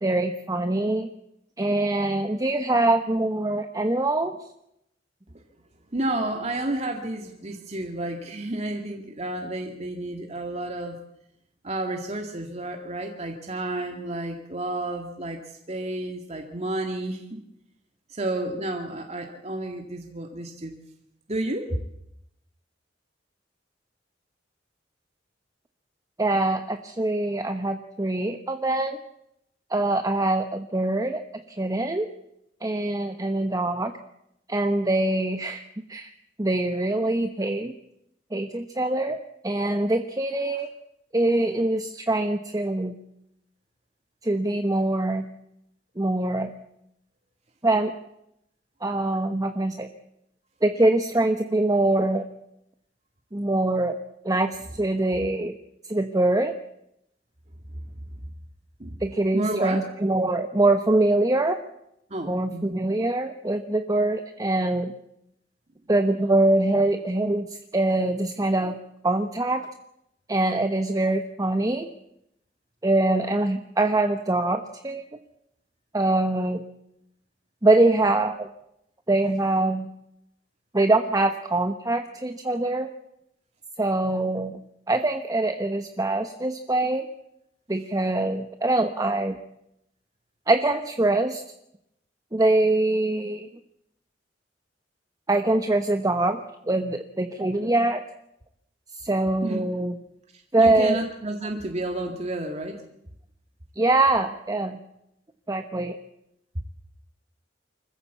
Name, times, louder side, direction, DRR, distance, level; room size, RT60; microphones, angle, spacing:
voice 1, 0.0-1.1 1.6-4.4 26.2-29.0 29.7-31.2 31.5-32.1 32.6-33.9 34.5-35.6 35.9-36.1 36.4-37.7 38.3-39.2 39.4-40.7 41.1-43.0 44.2-45.3 46.0-46.5 47.6-47.9 48.8-49.9 50.6-52.3 53.3-53.9 54.2-55.5 55.9-56.5 59.0-61.6 62.2-64.9 65.9-67.5 67.7-68.8 69.0-69.7 70.3-71.9 72.8-75.0 75.9-76.6 77.6-78.5 79.1-79.9 80.7-82.9 83.8-84.6 84.9-87.1 87.7-89.4 90.5-91.4 92.3-93.5 95.3-96.4 96.7-98.0 99.0-100.0 100.5-101.0 103.8-104.8 105.5-106.0, right 2 dB, 20° right, 7 dB, 1.0 m, -23 dB
voice 2, 5.9-11.0 11.6-15.4 15.7-17.4 18.1-20.8 21.3-21.8 58.8-59.0 59.3-59.8 62.1-62.7 99.4-99.6 100.6-102.8, right 1 dB, 35° right, 3 dB, 2.1 m, -31 dB
25.5 x 14.5 x 8.4 m, 0.81 s
head